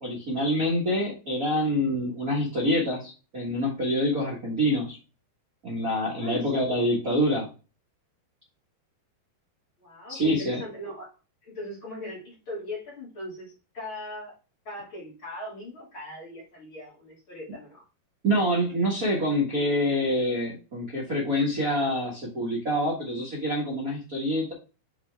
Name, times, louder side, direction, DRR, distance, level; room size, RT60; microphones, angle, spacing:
voice 1, 0.0-5.0 5.6-7.5 10.1-10.6 18.2-24.5, equal, 70° right, -6 dB, 0.8 m, -26 dB
voice 2, 6.2-6.7 9.8-11.1 11.4-14.3 14.6-17.8, left 1 dB, 35° left, -5 dB, 2.8 m, -39 dB
7.2 x 4.4 x 3.4 m, 0.32 s
omnidirectional pair, 4.8 m